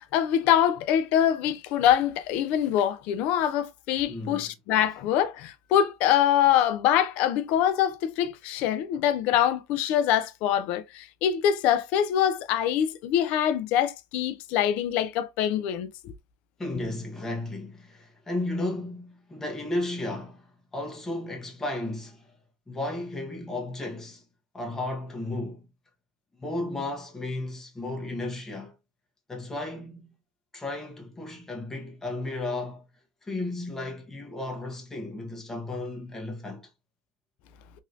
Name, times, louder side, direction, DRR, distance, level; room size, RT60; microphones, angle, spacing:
voice 1, 0.1-16.1, left 10 dB, 70° left, 0.5 m, -24 dB
voice 2, 4.1-4.5 16.6-22.3 22.7-24.2 24.5-25.7 26.4-28.7 29.3-30.1 30.5-32.9 33.2-36.7, left 2 dB, 15° left, 1.1 m, -34 dB
2.9 x 2.7 x 2.5 m
supercardioid pair, 95°, 2 cm